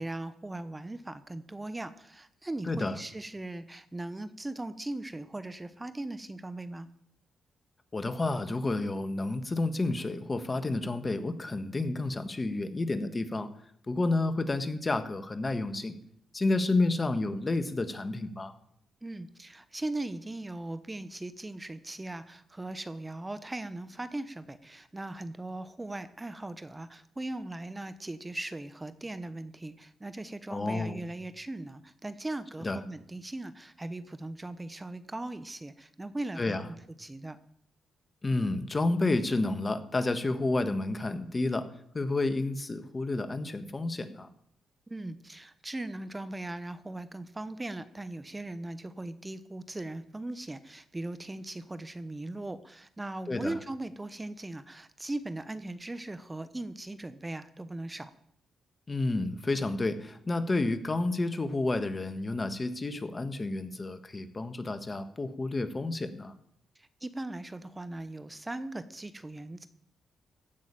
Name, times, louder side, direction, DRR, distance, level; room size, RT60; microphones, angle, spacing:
voice 1, 0.0-6.9 19.0-37.4 44.9-58.1 66.8-69.7, right 2 dB, 20° right, 12 dB, 1.0 m, -39 dB
voice 2, 2.6-3.0 7.9-13.5 13.9-16.0 16.3-18.5 30.5-31.0 32.6-32.8 36.4-36.6 38.2-41.7 41.9-44.3 53.3-53.5 58.9-66.3, left 2 dB, 30° left, 10 dB, 1.5 m, -30 dB
15.5 x 6.3 x 8.8 m, 0.68 s
supercardioid pair, 55°, 0 cm